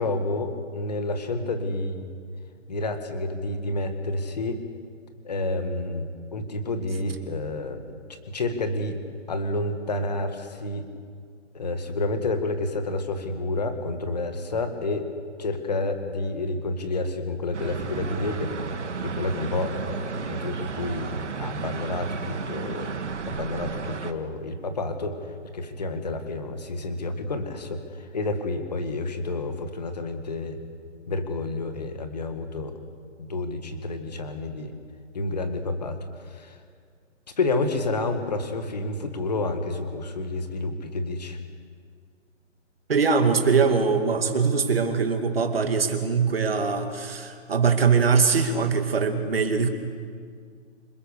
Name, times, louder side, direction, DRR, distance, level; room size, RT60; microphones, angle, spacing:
voice 1, 0.0-2.1 2.7-4.6 5.2-7.8 8.1-9.0 9.3-10.9 11.5-15.1 15.4-18.5 19.0-22.9 23.3-25.2 25.5-30.6 31.1-32.7 33.2-34.7 35.1-36.0 36.3-36.6 37.4-41.4, left 2 dB, 35° left, 7 dB, 1.9 m, -29 dB
sound 1, 17.5-24.1, right 5 dB, 65° right, 1.7 m, -33 dB
voice 2, 42.9-49.7, right 5 dB, 50° right, 5 dB, 2.3 m, -22 dB
27.0 x 21.5 x 6.7 m, 2.1 s
hypercardioid pair, 180°, 38 cm